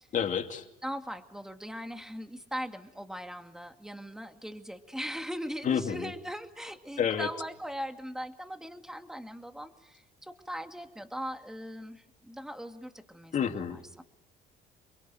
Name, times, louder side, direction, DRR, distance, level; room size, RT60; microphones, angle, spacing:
voice 1, 0.1-0.6 5.6-6.1 7.0-7.3 13.3-13.8, left 8 dB, 50° left, 5 dB, 2.6 m, -29 dB
voice 2, 0.8-14.0, equal, 5° right, 6 dB, 2.1 m, -40 dB
28.5 x 22.5 x 9.2 m, 0.90 s
cardioid pair, 110°, 17 cm